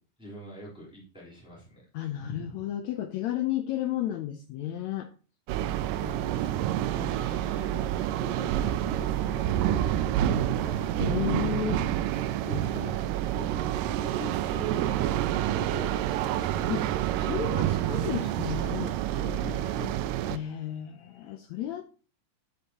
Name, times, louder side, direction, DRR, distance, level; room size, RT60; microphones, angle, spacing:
voice 1, 0.2-1.8 2.1-2.7 6.0-11.0 12.3-13.0 13.3-13.5 13.8-16.7 19.1-19.9 20.7-20.8, equal, ahead, 3.6 m, -44 dB
voice 2, 1.9-5.1 11.0-11.9 12.5-12.9 16.7-16.9 17.2-19.0 20.3-21.9, left 12 dB, 80° left, 1.6 m, -33 dB
sound 1, 5.5-20.4, right 12 dB, 85° right, 2.2 m, -28 dB
9.5 x 8.3 x 2.9 m
omnidirectional pair, 3.8 m